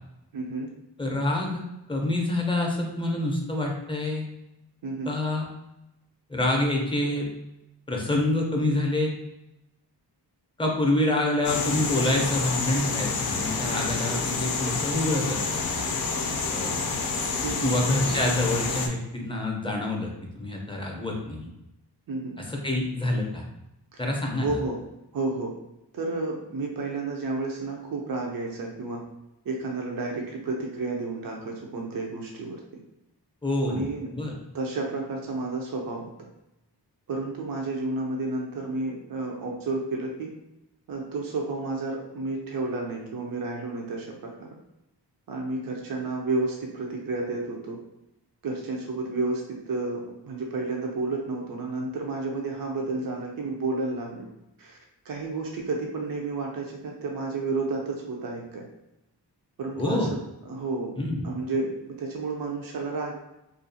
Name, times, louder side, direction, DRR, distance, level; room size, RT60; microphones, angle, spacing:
voice 1, 0.3-0.7 4.8-5.1 17.4-17.7 22.1-22.4 24.4-24.8 25.1-25.5 25.9-29.0 29.4-32.6 33.7-34.1 34.5-36.1 37.1-40.3 40.9-44.5 45.3-47.8 48.4-54.3 54.6-54.8 55.0-58.6 59.6-60.2 60.5-61.0 61.2-63.1, right 3 dB, 55° right, 0 dB, 0.6 m, -31 dB
voice 2, 1.0-1.6 1.9-4.2 5.1-5.5 6.3-7.3 7.9-9.1 10.6-15.7 16.5-16.8 17.6-21.5 22.5-23.4 24.0-24.6 33.4-33.9 34.1-34.3 59.8-60.1 61.0-61.2, left 1 dB, 10° left, 0 dB, 0.6 m, -27 dB
sound 1, 11.4-18.9, left 4 dB, 60° left, 0.5 m, -28 dB
2.5 x 2.3 x 2.7 m, 0.91 s
cardioid pair, 65°, 42 cm